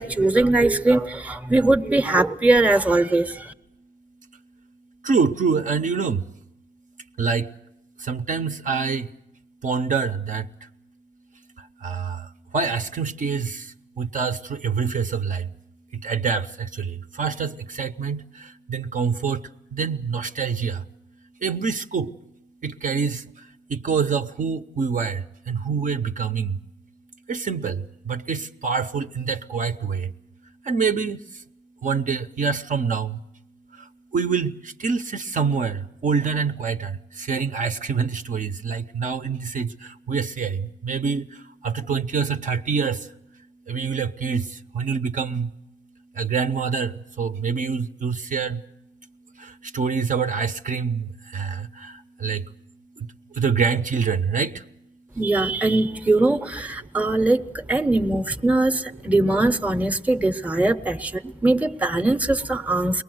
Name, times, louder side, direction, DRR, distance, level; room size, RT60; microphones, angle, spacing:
voice 1, 0.0-3.5 55.2-63.0, right 2 dB, 5° right, 0.8 m, -21 dB
voice 2, 5.0-6.2 7.2-7.5 8.1-9.1 9.6-10.4 11.8-12.2 12.5-13.6 14.0-15.4 16.0-16.5 16.8-18.2 18.7-19.4 19.7-20.8 21.4-22.1 22.6-23.2 23.7-25.2 25.5-26.5 27.3-27.8 28.1-30.1 30.7-31.2 31.8-33.2 34.1-36.9 37.2-39.7 40.1-40.6 40.8-41.3 41.6-43.0 43.7-44.4 44.7-45.5 46.2-46.9 47.2-48.6 49.7-51.0 51.3-51.9 52.2-52.4 53.4-54.5, right 5 dB, 40° right, 0.8 m, -25 dB
22.5 x 19.5 x 7.8 m
cardioid pair, 90°, 20 cm